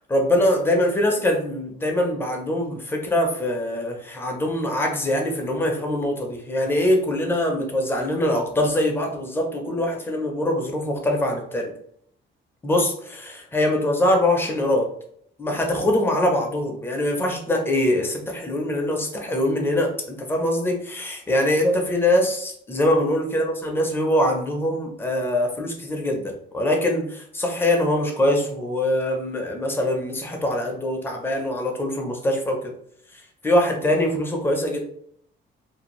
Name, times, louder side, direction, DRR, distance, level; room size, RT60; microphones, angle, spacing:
voice 1, 0.0-11.7 12.6-14.9 15.4-32.7 33.1-34.8, left 1 dB, 10° left, 1 dB, 0.4 m, -23 dB
2.6 x 2.3 x 2.9 m, 0.67 s
cardioid pair, 165°, 20 cm